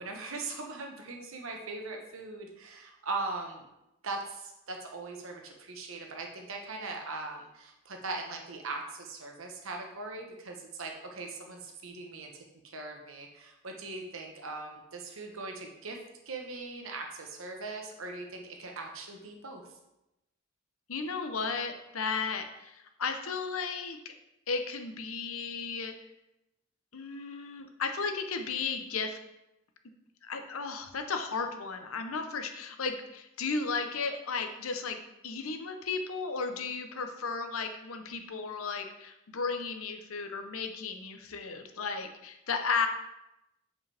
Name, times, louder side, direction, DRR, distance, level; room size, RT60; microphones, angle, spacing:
voice 1, 0.0-3.6 4.0-12.3 12.6-16.0 16.3-19.6, right 3 dB, 80° right, 2 dB, 1.1 m, -40 dB
voice 2, 20.9-24.1 24.5-25.9 26.9-29.2 30.2-35.0 35.2-42.9, left 4 dB, 90° left, 6 dB, 0.8 m, -34 dB
7.5 x 5.2 x 3.4 m, 0.91 s
head